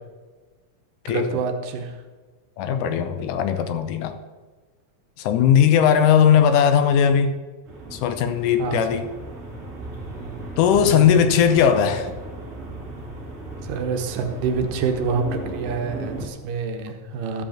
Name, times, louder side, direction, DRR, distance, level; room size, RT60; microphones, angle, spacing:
voice 1, 1.1-1.9 8.6-8.8 10.8-11.2 13.7-17.4, right 5 dB, 80° right, 5 dB, 2.5 m, -27 dB
voice 2, 2.6-4.1 5.2-7.3 7.9-9.1 10.6-12.1, left 8 dB, 80° left, 9 dB, 2.1 m, -18 dB
sound 1, 7.7-16.3, right 2 dB, 25° right, 2.3 m, -36 dB
12.5 x 5.2 x 7.1 m, 1.3 s
omnidirectional pair, 3.9 m